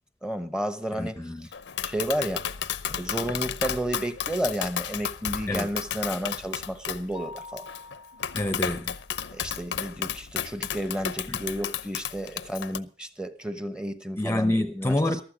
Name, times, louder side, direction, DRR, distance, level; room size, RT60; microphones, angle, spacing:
voice 1, 0.2-1.2 1.8-2.5 2.9-7.7 9.3-14.9, right 1 dB, 5° right, 1.0 m, -32 dB
voice 2, 1.0-1.5 5.5-5.7 8.3-9.0 11.3-11.4 14.1-15.2, left 1 dB, 15° left, 0.7 m, -27 dB
Tap, 1.5-12.8, left 8 dB, 75° left, 0.7 m, -33 dB
Mallet percussion, 7.1-8.9, left 3 dB, 30° right, 2.2 m, -45 dB
15.0 x 12.5 x 5.0 m
head